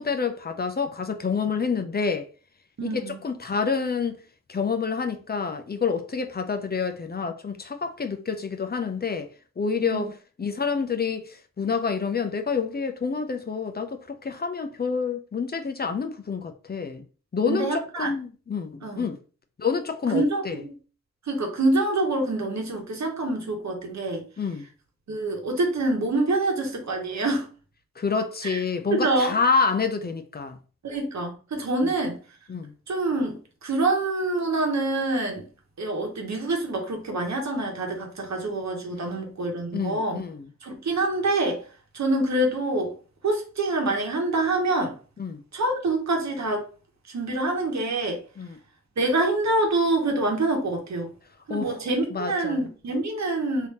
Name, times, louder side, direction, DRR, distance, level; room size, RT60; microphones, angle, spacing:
voice 1, 0.0-2.3 2.8-4.2 4.5-9.3 9.6-10.1 10.4-17.1 17.3-19.2 19.6-20.6 24.4-24.7 28.0-30.6 32.5-32.7 39.7-40.5 45.2-45.4 48.4-48.6 51.5-51.8 52.1-52.6, left 5 dB, 35° left, 0.5 m, -28 dB
voice 2, 2.8-3.2 9.8-10.0 17.5-18.1 18.8-19.1 20.1-20.7 21.3-24.2 25.1-27.5 28.4-28.6 28.9-29.3 30.8-32.2 32.9-35.5 35.8-40.2 40.6-41.6 41.9-42.9 43.2-45.0 45.5-46.7 47.1-48.2 49.0-51.1 51.5-53.7, right 2 dB, 70° right, 1.1 m, -26 dB
3.3 x 2.8 x 2.9 m
cardioid pair, 65°, 29 cm